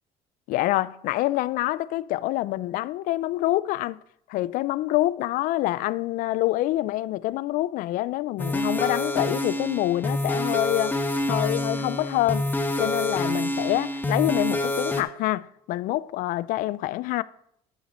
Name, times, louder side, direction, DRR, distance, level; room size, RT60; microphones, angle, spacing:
voice 1, 0.5-4.0 4.3-11.0 11.3-12.5 12.8-17.2, left 16 dB, 65° left, 0.4 m, -26 dB
sound 1, 8.4-15.0, left 1 dB, 10° left, 1.1 m, -27 dB
11.5 x 5.7 x 4.3 m
supercardioid pair, 100°, 15 cm